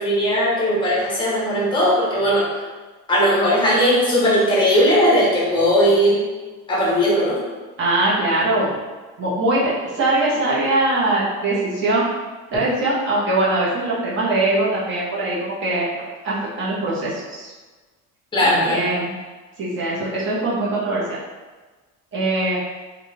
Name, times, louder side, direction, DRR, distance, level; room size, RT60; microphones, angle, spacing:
voice 1, 0.0-2.4 3.1-6.2 6.7-7.4 18.3-18.8, equal, 15° left, -6 dB, 0.8 m, -18 dB
voice 2, 7.8-8.7 9.2-12.0 12.5-17.5 18.4-19.1 19.6-21.0 22.1-22.6, right 2 dB, 35° right, -7 dB, 0.9 m, -22 dB
2.4 x 2.4 x 3.1 m, 1.3 s
cardioid pair, 150°, 33 cm